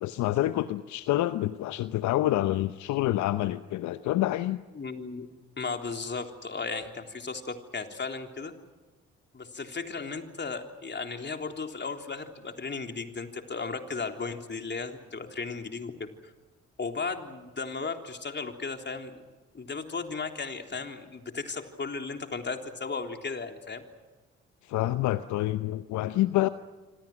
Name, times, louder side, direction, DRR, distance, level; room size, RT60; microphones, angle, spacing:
voice 1, 0.0-4.6 24.6-26.5, left 15 dB, 65° left, 13 dB, 0.9 m, -27 dB
voice 2, 4.8-5.3 5.6-8.5 9.3-16.3 16.8-19.2 19.5-23.8, left 4 dB, 35° left, 5 dB, 3.6 m, -35 dB
26.5 x 26.5 x 6.2 m, 1.3 s
hypercardioid pair, 45°, 31 cm